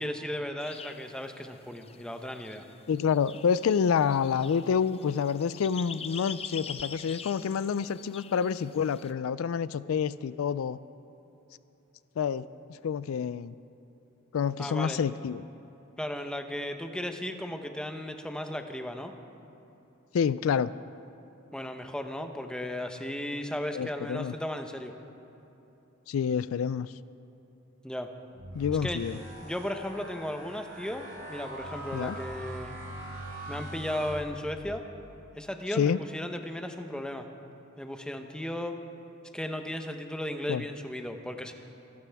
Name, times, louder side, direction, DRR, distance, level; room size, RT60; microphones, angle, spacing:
voice 1, 0.0-2.6 14.6-15.0 16.0-19.1 21.5-24.9 27.8-28.1 28.8-29.0 29.4-32.7 33.5-34.8 35.4-37.3 37.8-38.8 39.3-41.5, left 1 dB, 5° left, 5 dB, 0.8 m, -35 dB
sound 1, 0.6-9.1, left 7 dB, 30° left, 0.5 m, -45 dB
voice 2, 2.9-10.8 12.2-12.5 12.8-13.6 14.3-15.4 20.1-20.7 23.7-24.3 26.1-26.9 28.5-29.2 31.9-32.2 35.8-36.0 40.5-40.6, left 7 dB, 80° left, 16 dB, 0.4 m, -28 dB
sound 2, 28.3-34.8, right 1 dB, 75° right, 4.4 m, -42 dB
26.0 x 13.0 x 3.5 m, 3.0 s
head